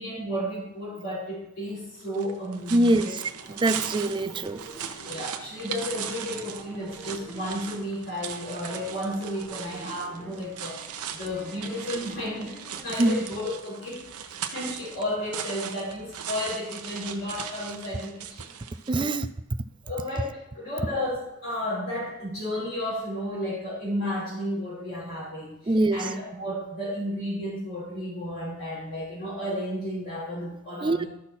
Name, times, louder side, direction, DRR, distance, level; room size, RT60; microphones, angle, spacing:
voice 1, 0.0-3.2 5.0-10.8 11.1-12.6 12.8-18.5 18.9-19.1 19.8-31.1, equal, 60° left, 4.1 m, -33 dB
sound 1, 2.0-19.2, right 8 dB, 90° right, 0.8 m, -39 dB
voice 2, 2.7-3.2 3.6-4.6 13.0-13.2 18.9-19.3 25.7-26.0 30.8-31.0, right 1 dB, 20° right, 0.4 m, -23 dB
sound 2, 3.0-12.9, right 1 dB, 5° left, 1.3 m, -47 dB
12.5 x 6.0 x 4.2 m
head